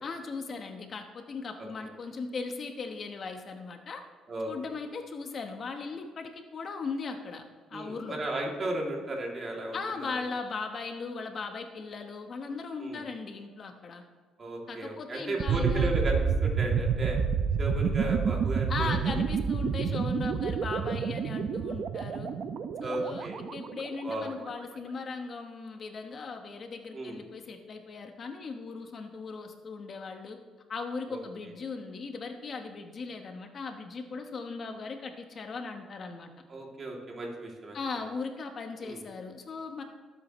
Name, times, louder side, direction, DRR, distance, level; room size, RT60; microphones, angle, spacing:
voice 1, 0.0-4.0 4.4-7.4 7.7-8.2 9.7-14.0 14.7-15.9 18.7-22.3 22.8-30.4 30.7-36.3 37.7-39.8, left 4 dB, 40° left, 5 dB, 1.1 m, -38 dB
voice 2, 4.3-4.7 7.7-10.2 12.8-13.0 14.4-17.2 17.6-19.2 22.8-23.4 24.0-24.3 26.9-27.2 31.1-31.5 36.5-37.8 38.8-39.0, right 1 dB, 35° right, -1 dB, 2.7 m, -35 dB
sound 1, 15.4-24.3, right 6 dB, 55° right, 0.7 m, -29 dB
18.5 x 8.4 x 3.1 m, 1.5 s
cardioid pair, 115°, 0 cm